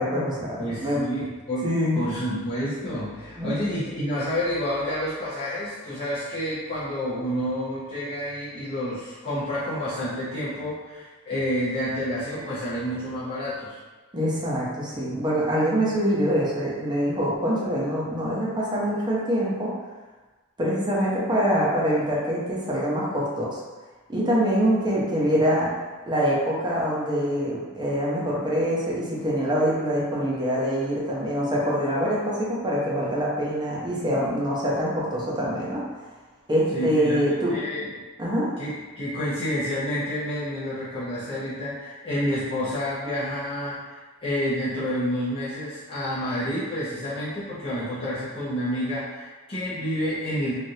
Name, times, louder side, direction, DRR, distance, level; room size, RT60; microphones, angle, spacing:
voice 1, 0.0-1.0 1.6-2.0 3.4-3.7 14.1-19.7 20.6-23.6 24.1-25.7 26.1-35.8 36.5-37.6 38.2-38.5, equal, 20° right, -6 dB, 0.7 m, -24 dB
voice 2, 0.6-1.7 1.9-13.8 36.7-37.2 37.5-37.9 38.6-50.5, equal, 25° left, -11 dB, 0.7 m, -29 dB
3.2 x 2.5 x 2.7 m, 1.3 s
head